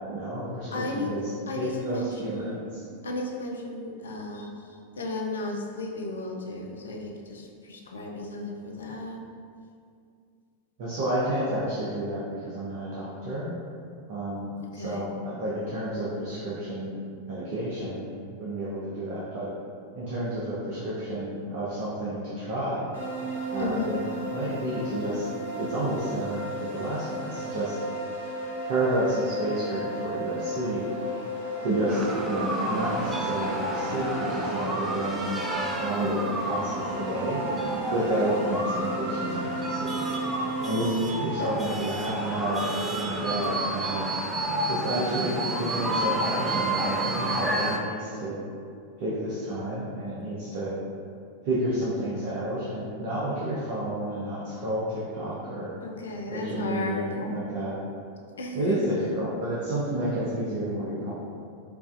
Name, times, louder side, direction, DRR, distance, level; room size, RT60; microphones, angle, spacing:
voice 1, 0.1-1.2 1.6-2.8 10.8-13.5 14.1-16.9 17.3-18.1 18.4-19.5 19.9-22.9 23.5-25.3 25.6-27.8 28.7-30.8 31.6-35.4 35.8-37.4 37.9-40.0 40.6-44.0 44.7-48.4 49.0-50.8 51.4-55.7 56.3-57.7 58.5-61.1, right 1 dB, 50° right, -8 dB, 0.7 m, -30 dB
voice 2, 0.7-1.1 1.5-2.6 3.0-9.2 14.7-15.0 23.6-24.0 55.8-57.3 58.4-58.8, left 2 dB, 70° left, 0 dB, 0.4 m, -34 dB
sound 1, 22.9-40.7, right 1 dB, 70° right, 1.3 m, -34 dB
sound 2, 31.9-47.8, right 1 dB, 15° right, 0.4 m, -30 dB
4.6 x 2.5 x 2.4 m, 2.3 s
figure-of-eight pair, 90°, 0 cm